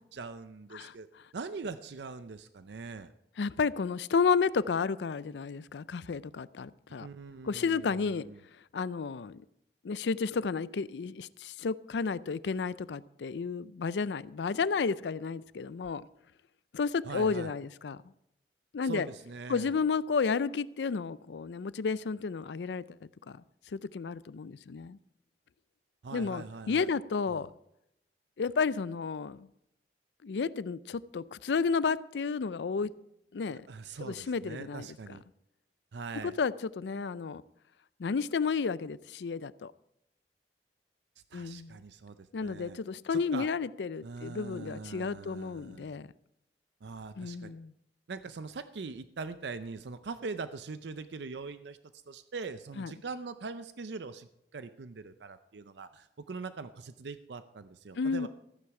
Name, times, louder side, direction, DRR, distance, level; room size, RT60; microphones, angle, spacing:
voice 1, 0.1-1.1 1.3-3.1 7.0-8.4 17.1-17.5 18.8-19.7 26.0-26.9 27.3-27.4 33.5-35.2 35.9-36.3 41.3-42.8 43.1-43.5 44.0-45.9 46.8-47.5 48.1-51.8 52.1-58.3, right 4 dB, 75° right, 12 dB, 0.5 m, -42 dB
voice 2, 3.4-7.1 7.4-8.3 8.7-9.4 9.8-16.1 16.7-18.0 18.7-19.1 19.5-23.4 23.7-25.0 26.1-27.5 28.4-29.5 30.2-32.9 33.3-33.7 34.0-35.2 36.2-37.4 38.0-39.7 41.3-41.8 42.3-46.1 47.2-47.7 52.8-52.9 58.0-58.3, left 5 dB, 80° left, 18 dB, 0.4 m, -32 dB
14.0 x 9.6 x 4.8 m, 0.79 s
head